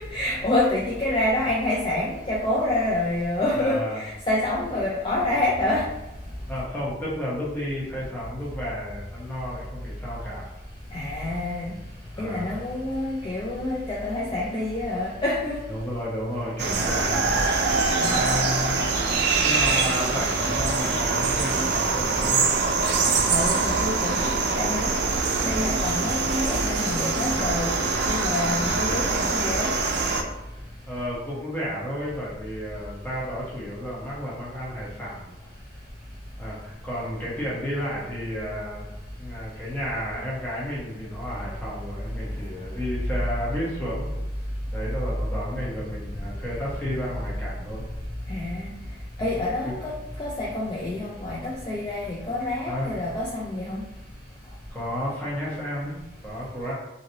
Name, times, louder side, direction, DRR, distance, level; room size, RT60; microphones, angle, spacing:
voice 1, 0.1-5.8 10.9-11.7 12.2-15.6 18.0-18.2 23.3-25.0 25.4-27.7 28.1-29.7 48.3-48.6 49.2-49.9 50.2-53.8, left 1 dB, 25° left, -4 dB, 0.3 m, -27 dB
voice 2, 3.6-4.0 6.5-10.5 12.1-12.5 15.7-17.4 18.0-19.0 19.4-22.6 30.9-35.3 36.4-38.8 39.2-44.1 44.7-47.9 49.6-49.7 52.7-52.9 54.7-56.7, equal, 10° left, -7 dB, 0.9 m, -32 dB
sound 1, 16.6-30.2, right 4 dB, 75° right, 0.4 m, -24 dB
heavy hit grunge, 17.3-18.0 20.4-21.1 23.5-24.2 25.5-26.9 28.8-30.3, equal, 65° left, 1.1 m, -39 dB
2.9 x 2.7 x 2.7 m, 1.0 s
head